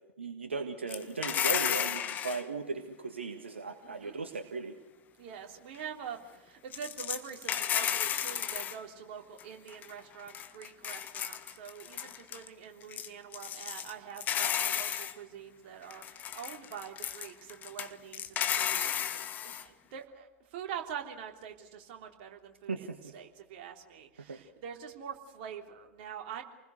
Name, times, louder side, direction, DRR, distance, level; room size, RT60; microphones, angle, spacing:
voice 1, 0.2-4.7 22.7-23.1 24.3-24.4, right 4 dB, 70° right, 6 dB, 1.7 m, -37 dB
sound 1, 0.9-2.4 6.7-8.8 9.4-9.5 9.7-10.0 10.3-12.5 12.8-13.9 14.2-15.1 15.9-19.6, left 9 dB, 25° left, 1.4 m, -33 dB
voice 2, 3.8-4.1 5.2-22.9 23.1-26.4, right 8 dB, 45° right, 3 dB, 3.3 m, -45 dB
28.5 x 20.5 x 6.7 m, 1.0 s
figure-of-eight pair, 95°, 6 cm